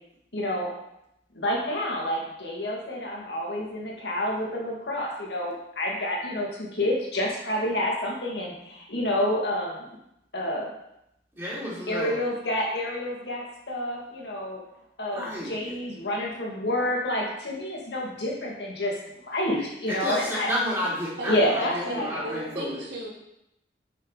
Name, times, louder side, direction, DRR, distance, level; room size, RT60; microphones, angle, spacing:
voice 1, 0.3-0.7 1.3-9.8 10.3-10.7 11.9-14.6 15.0-18.9 19.3-20.5 21.3-22.3, left 1 dB, 80° left, -2 dB, 2.2 m, -28 dB
voice 2, 11.4-12.2 15.1-15.7 19.9-22.8, equal, 15° right, -8 dB, 3.3 m, -31 dB
voice 3, 21.8-23.1, right 1 dB, 80° right, -5 dB, 2.8 m, -35 dB
9.4 x 5.8 x 4.1 m, 0.82 s
head